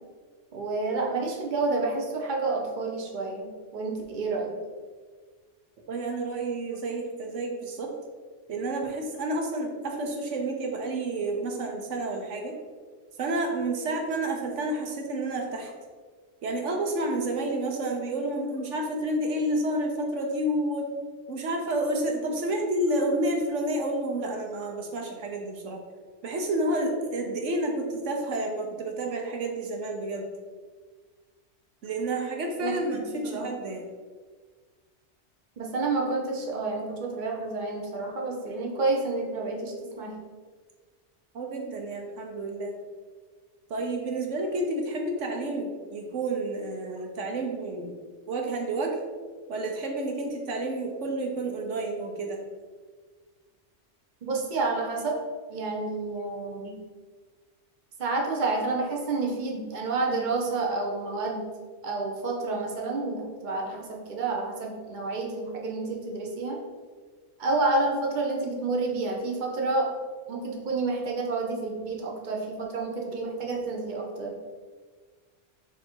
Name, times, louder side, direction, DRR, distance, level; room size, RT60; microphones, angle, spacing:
voice 1, 0.5-3.5 3.7-4.5 32.6-33.5 35.6-40.1 54.2-55.2 55.5-56.8 58.0-61.5 61.8-66.6 67.4-69.9 70.3-74.3, right 3 dB, 45° right, 0 dB, 1.0 m, -29 dB
voice 2, 5.9-7.9 8.5-12.6 13.2-15.7 16.4-20.9 21.3-25.8 26.2-30.2 31.8-33.8 41.3-42.7 43.7-47.9 48.3-49.0 49.5-52.4, right 1 dB, 85° right, 1 dB, 1.2 m, -30 dB
6.9 x 3.0 x 4.5 m, 1.5 s
omnidirectional pair, 1.2 m